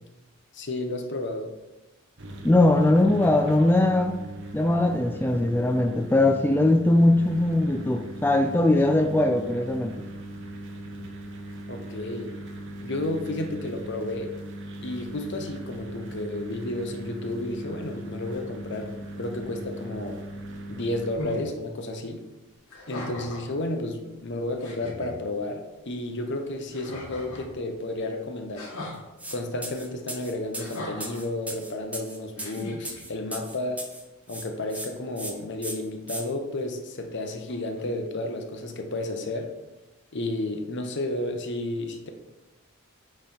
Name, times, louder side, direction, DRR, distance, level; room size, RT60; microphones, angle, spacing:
voice 1, 0.5-1.5 11.7-12.3 12.8-14.3 14.8-20.2 20.7-22.2 22.9-28.7 29.3-33.9 34.3-39.5 40.1-42.1, left 2 dB, 60° left, 5 dB, 0.9 m, -32 dB
sound 1, 2.2-21.1, right 1 dB, 60° right, 0.9 m, -39 dB
voice 2, 2.4-4.2 4.5-9.9, left 1 dB, 10° left, 4 dB, 0.3 m, -21 dB
sound 2, 21.2-21.5 22.7-23.5 24.2-24.3 24.6-25.1 26.7-27.5 28.5-29.0 30.5-31.2 32.4-33.0, left 1 dB, 75° left, 1.7 m, -38 dB
sound 3, 29.2-29.4 29.6-34.0 34.3-34.9 35.2-35.3 35.6-36.2, right 1 dB, 5° right, 0.8 m, -37 dB
9.0 x 3.4 x 4.4 m, 1.0 s
head